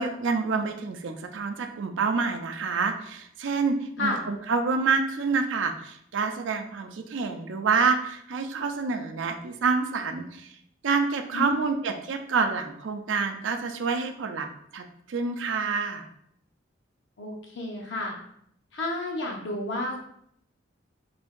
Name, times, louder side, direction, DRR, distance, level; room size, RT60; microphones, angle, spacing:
voice 1, 0.0-10.5 10.8-14.5 14.7-16.1, right 4 dB, 90° right, 6 dB, 0.5 m, -27 dB
voice 2, 11.3-11.8 17.2-18.1 18.7-20.0, left 2 dB, 70° left, 0 dB, 0.7 m, -31 dB
3.4 x 2.6 x 3.6 m, 0.70 s
head